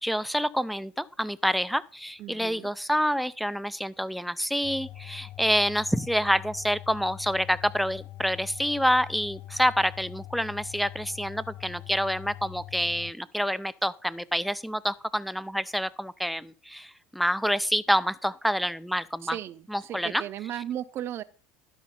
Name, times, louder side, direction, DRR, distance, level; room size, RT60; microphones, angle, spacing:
voice 1, 0.0-19.4 19.7-20.2, equal, ahead, 0.5 m, -27 dB
voice 2, 2.2-2.7 19.2-21.2, right 11 dB, 50° right, 0.7 m, -36 dB
sound 1, 4.6-13.1, left 14 dB, 50° left, 0.4 m, -43 dB
12.0 x 5.2 x 5.3 m
supercardioid pair, 95°, 5 cm